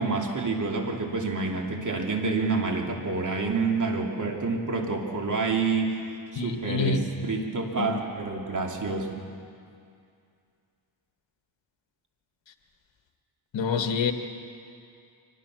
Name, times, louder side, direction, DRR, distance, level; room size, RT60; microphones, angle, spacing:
voice 1, 0.0-6.0 6.3-9.2, right 4 dB, 40° right, 1 dB, 2.8 m, -28 dB
voice 2, 6.3-7.0 7.8-8.0 13.5-14.1, left 5 dB, 65° left, 7 dB, 1.5 m, -27 dB
24.0 x 18.5 x 6.2 m, 2.4 s
cardioid pair, 95°, 49 cm